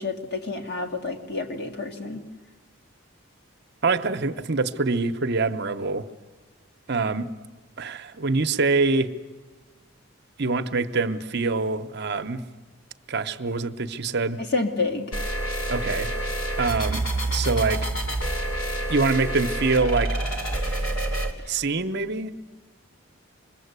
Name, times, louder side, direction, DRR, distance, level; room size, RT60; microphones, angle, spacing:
voice 1, 0.0-2.2 14.4-15.1 21.4-21.6, left 3 dB, 50° left, 2.4 m, -29 dB
voice 2, 3.8-6.1 6.9-7.3 7.8-9.1 10.4-12.4 13.1-14.4 15.7-16.1 16.6-17.0 17.3-17.9 18.9-20.2 20.7-20.9 21.5-22.3, right 3 dB, 55° right, 0.9 m, -25 dB
sound 1, 15.1-21.3, right 1 dB, 70° left, 3.2 m, -27 dB
26.0 x 21.0 x 8.2 m
head